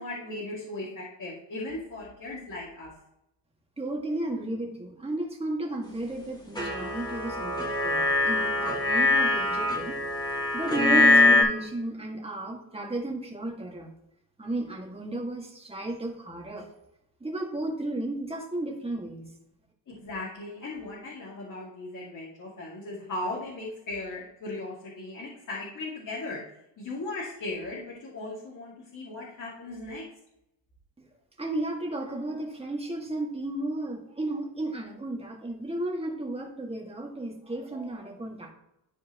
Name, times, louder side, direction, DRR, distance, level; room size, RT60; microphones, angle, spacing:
voice 1, 0.0-2.9 19.9-26.4 26.8-30.0, left 2 dB, 45° left, -6 dB, 2.4 m, -37 dB
voice 2, 3.8-10.0 10.3-13.9 14.4-16.7 17.2-19.3 31.0-31.1 31.4-38.5, right 1 dB, 15° right, 0 dB, 2.0 m, -33 dB
sound 1, 6.6-11.4, left 2 dB, 10° left, 2.0 m, -23 dB
12.5 x 4.5 x 3.0 m, 0.85 s
cardioid pair, 100°, 43 cm